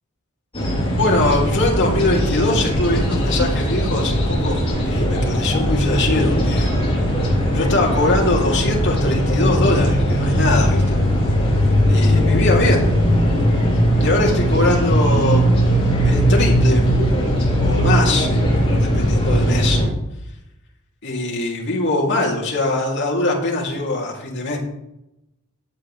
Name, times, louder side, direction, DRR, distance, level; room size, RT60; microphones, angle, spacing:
sound 1, 0.5-19.9, equal, 25° left, 3.6 m, -18 dB
voice 1, 1.0-4.5 4.8-6.7 7.5-11.0 11.9-12.9 14.0-15.5 16.0-16.9 17.6-18.3 18.8-19.8 21.0-24.6, left 2 dB, 55° left, -2 dB, 3.1 m, -22 dB
15.5 x 9.1 x 3.4 m, 0.87 s
head